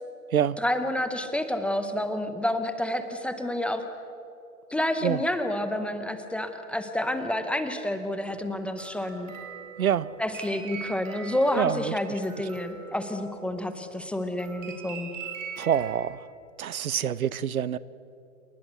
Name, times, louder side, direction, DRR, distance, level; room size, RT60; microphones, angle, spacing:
voice 1, 0.6-3.8 4.7-9.3 10.2-15.1, left 1 dB, 5° left, 8 dB, 0.6 m, -29 dB
sound 1, 8.2-13.9 14.4-15.9, right 7 dB, 60° right, 5.4 m, -42 dB
voice 2, 9.8-10.1 11.5-12.0 15.6-16.3 16.6-17.8, right 9 dB, 75° right, 18 dB, 0.9 m, -26 dB
28.5 x 19.5 x 8.0 m, 2.8 s
hypercardioid pair, 130°, 42 cm